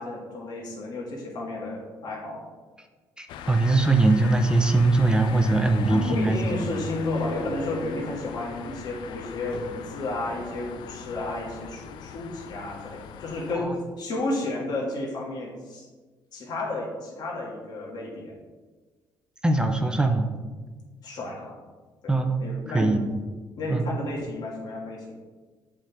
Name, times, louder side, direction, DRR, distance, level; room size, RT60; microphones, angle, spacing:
voice 1, 0.0-2.4 5.9-15.9 16.3-18.3 21.0-21.6 22.0-22.1 22.4-23.0 23.6-25.1, left 2 dB, 55° left, -3 dB, 1.7 m, -32 dB
voice 2, 3.2-6.7 13.5-13.7 19.4-20.3 22.1-22.4 22.7-23.1 23.7-23.8, right 2 dB, 10° right, 5 dB, 0.6 m, -22 dB
sound 1, 3.3-13.5, left 7 dB, 75° left, 0.4 m, -39 dB
7.6 x 3.7 x 4.5 m, 1.4 s
cardioid pair, 105°, 8 cm